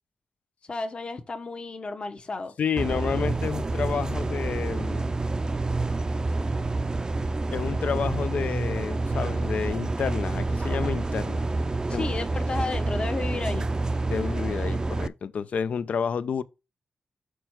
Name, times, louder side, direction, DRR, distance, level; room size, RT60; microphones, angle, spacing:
voice 1, 0.7-2.5 11.9-13.7, left 3 dB, 45° left, 1.2 m, -32 dB
voice 2, 2.6-5.1 7.5-11.5 11.9-12.1 14.1-16.4, left 6 dB, 70° left, 0.5 m, -30 dB
sound 1, 2.8-15.1, right 2 dB, 30° right, 0.5 m, -28 dB
6.1 x 4.7 x 4.5 m
cardioid pair, 60°, 3 cm